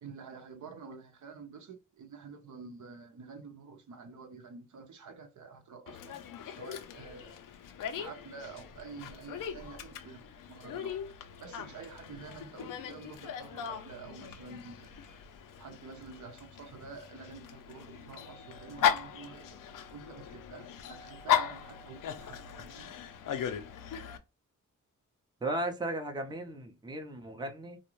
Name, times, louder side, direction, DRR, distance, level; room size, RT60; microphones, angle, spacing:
voice 1, 0.0-7.4 7.9-11.0 11.4-15.2 15.6-19.6 19.9-22.9, right 5 dB, 65° right, 0.7 m, -49 dB
Dog, 5.9-24.2, left 9 dB, 85° left, 0.5 m, -37 dB
voice 2, 25.4-27.8, right 1 dB, 15° right, 0.6 m, -36 dB
2.5 x 2.1 x 2.9 m
cardioid pair, 85°, 32 cm